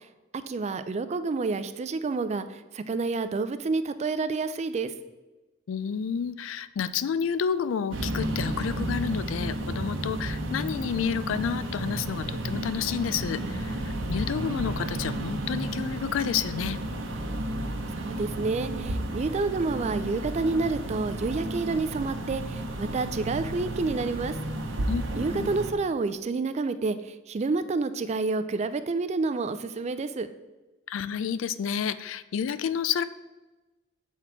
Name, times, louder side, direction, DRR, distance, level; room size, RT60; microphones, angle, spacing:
voice 1, 0.5-2.5 2.7-4.9 18.0-24.3 25.2-30.3, right 3 dB, 35° right, 12 dB, 0.3 m, -29 dB
voice 2, 5.7-16.8 24.9-25.0 25.3-25.5 30.9-33.0, left 7 dB, 85° left, 15 dB, 0.3 m, -30 dB
sound 1, 7.9-25.7, right 1 dB, 75° right, 0.9 m, -32 dB
7.1 x 4.1 x 4.4 m, 1.1 s
head